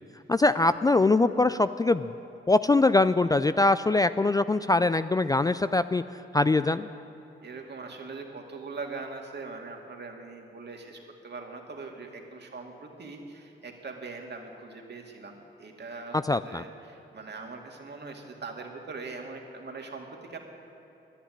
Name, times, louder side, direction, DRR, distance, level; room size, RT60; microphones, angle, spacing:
voice 1, 0.3-2.1 2.5-6.0 6.3-6.9 16.1-16.6, left 2 dB, 20° left, 13 dB, 0.3 m, -23 dB
voice 2, 7.4-20.4, right 3 dB, 55° right, 2 dB, 2.2 m, -41 dB
11.0 x 10.0 x 9.7 m, 2.9 s
cardioid pair, 55°, 21 cm